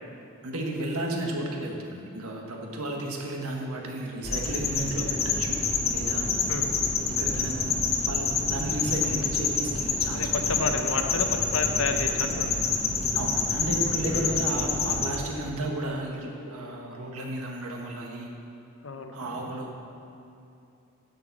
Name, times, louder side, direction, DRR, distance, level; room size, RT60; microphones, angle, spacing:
voice 1, 0.4-5.6 5.9-6.3 7.2-10.3 13.1-18.3 19.1-19.7, right 1 dB, 80° right, 1 dB, 1.5 m, -33 dB
sound 1, 4.2-15.2, left 4 dB, 30° left, 0.8 m, -27 dB
voice 2, 10.1-12.6 14.1-14.4 18.8-19.2, left 3 dB, 65° left, 5 dB, 0.8 m, -31 dB
11.0 x 6.9 x 6.0 m, 2.7 s
head